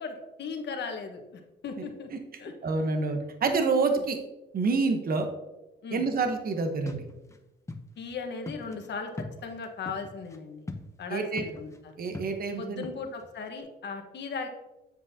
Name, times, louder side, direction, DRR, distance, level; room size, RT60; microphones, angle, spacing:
voice 1, 0.0-2.1 2.4-2.5 3.1-3.3 5.8-6.1 8.0-10.7 11.0-12.0 12.6-14.5, left 5 dB, 60° left, 4 dB, 1.3 m, -37 dB
voice 2, 2.6-4.2 4.5-5.3 5.9-7.0 11.1-11.5 12.0-12.8, right 4 dB, 50° right, 5 dB, 1.1 m, -27 dB
sound 1, 6.9-7.4 7.7-7.8 8.1-8.2 8.5-10.4 10.7-11.1 11.4-11.8 12.1-13.3, left 2 dB, 15° left, 0.7 m, -41 dB
7.8 x 7.4 x 2.8 m, 1.0 s
cardioid pair, 90°, 20 cm